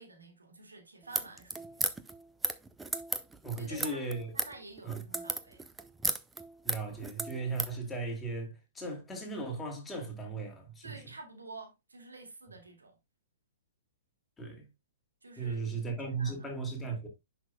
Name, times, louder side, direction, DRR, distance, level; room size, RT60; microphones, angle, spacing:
voice 1, 0.0-1.8 3.6-4.0 4.3-5.7 10.8-13.0 15.2-16.5, right 3 dB, 75° right, 2.2 m, -50 dB
sound 1, 1.0-7.8, right 3 dB, 10° right, 0.6 m, -35 dB
voice 2, 3.4-4.3 4.8-5.0 6.6-11.0 14.4-14.7 15.4-17.1, right 3 dB, 10° left, 2.4 m, -37 dB
10.5 x 5.8 x 2.3 m
figure-of-eight pair, 115°, 0 cm